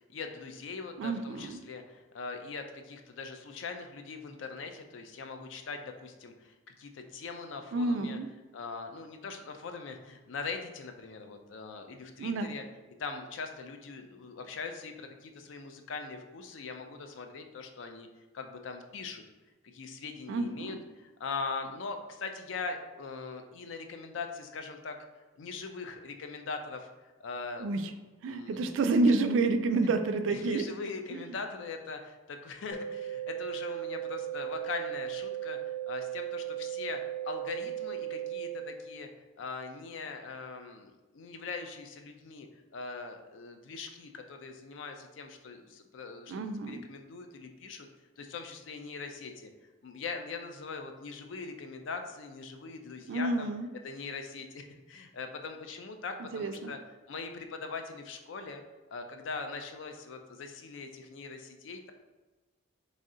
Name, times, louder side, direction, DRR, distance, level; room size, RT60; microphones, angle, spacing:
voice 1, 0.1-8.2 8.5-12.6 13.0-18.1 18.3-19.2 19.7-25.0 25.4-26.9 27.2-27.7 28.3-28.6 28.9-29.0 30.3-39.1 39.4-47.9 48.2-49.5 49.8-53.5 53.8-56.8 57.1-58.6 58.9-61.9, left 4 dB, 75° left, 6 dB, 0.4 m, -41 dB
voice 2, 1.0-1.6 7.7-8.3 12.2-12.5 20.3-20.8 27.6-27.9 28.2-30.7 31.1-31.4 46.3-46.8 53.1-53.7 56.2-56.7, right 3 dB, 80° right, 9 dB, 0.3 m, -29 dB
sound 1, 32.7-38.7, right 12 dB, 50° left, 1.1 m, -37 dB
3.1 x 2.7 x 3.7 m, 1.2 s
head